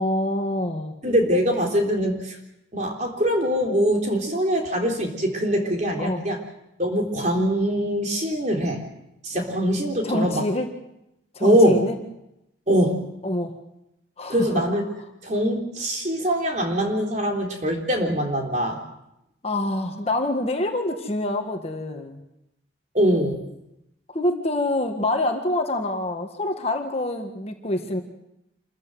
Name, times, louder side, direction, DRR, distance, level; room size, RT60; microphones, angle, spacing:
voice 1, 0.0-0.9 6.0-6.3 10.0-10.7 11.3-12.0 13.2-13.6 14.2-14.6 19.4-22.2 24.1-28.0, left 1 dB, 35° left, 4 dB, 1.7 m, -26 dB
voice 2, 1.0-2.4 2.7-6.4 6.8-8.8 9.2-10.4 11.4-11.8 12.7-13.0 14.3-14.9 15.2-18.8 22.9-23.4, equal, 40° right, 2 dB, 3.7 m, -23 dB
27.0 x 14.5 x 7.8 m, 0.87 s
head